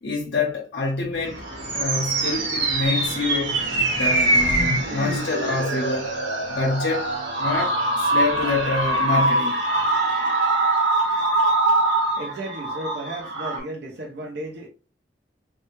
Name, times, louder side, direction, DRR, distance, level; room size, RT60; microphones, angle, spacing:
voice 1, 0.0-1.4 1.7-3.6 3.9-6.1 6.5-7.1 7.4-9.6, left 3 dB, 65° left, 0.6 m, -26 dB
sound 1, 1.0-9.0, equal, 40° right, 1.0 m, -39 dB
sound 2, 1.2-13.6, right 2 dB, 90° right, 1.0 m, -23 dB
voice 2, 11.5-14.7, right 1 dB, 60° right, 0.6 m, -35 dB
3.2 x 2.2 x 3.1 m
head